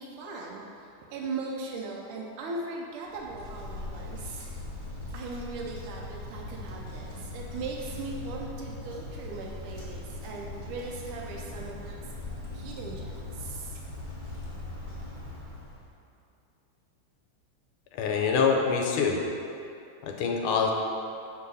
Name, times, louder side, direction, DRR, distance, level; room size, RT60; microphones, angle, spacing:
voice 1, 0.0-4.5 5.1-12.1 12.5-13.8, right 3 dB, 85° right, -2 dB, 1.5 m, -39 dB
Wind, 3.1-15.9, left 2 dB, 30° right, 1.4 m, -40 dB
voice 2, 17.9-19.2 20.0-20.7, left 5 dB, 80° left, 1 dB, 1.5 m, -25 dB
6.6 x 2.8 x 5.4 m, 2.6 s
omnidirectional pair, 2.4 m